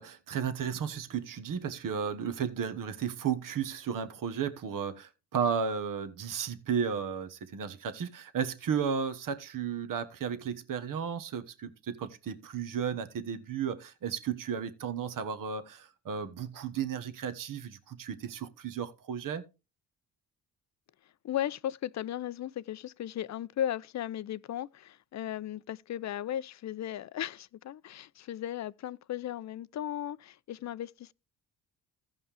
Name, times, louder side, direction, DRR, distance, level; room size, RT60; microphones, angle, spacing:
voice 1, 0.0-19.4, right 7 dB, 55° right, 1.3 m, -34 dB
voice 2, 21.2-31.1, left 11 dB, 45° left, 0.5 m, -36 dB
15.5 x 5.4 x 3.5 m
supercardioid pair, 60°, 39 cm